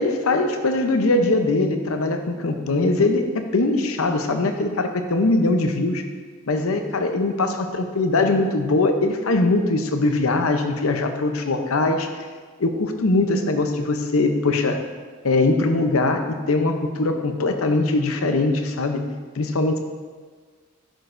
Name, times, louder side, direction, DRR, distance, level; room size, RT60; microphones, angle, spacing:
voice 1, 0.0-6.0 6.5-12.1 12.6-14.8 15.2-19.0 19.3-19.8, left 2 dB, 75° left, 6 dB, 0.7 m, -21 dB
11.0 x 6.2 x 2.6 m, 1.6 s
head